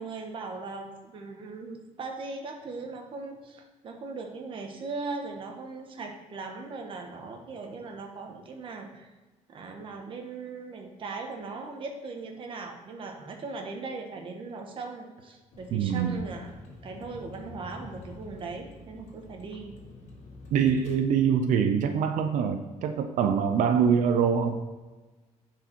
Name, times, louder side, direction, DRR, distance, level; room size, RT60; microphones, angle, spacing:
voice 1, 0.0-9.1 9.5-16.5 16.8-19.8, right 3 dB, 45° right, 3 dB, 1.2 m, -39 dB
Vehicle, 15.5-21.0, left 2 dB, 65° left, 2.0 m, -47 dB
voice 2, 15.7-16.2 20.5-24.6, right 7 dB, 90° right, 6 dB, 0.6 m, -24 dB
10.5 x 4.9 x 4.5 m, 1.2 s
cardioid pair, 175°, 13 cm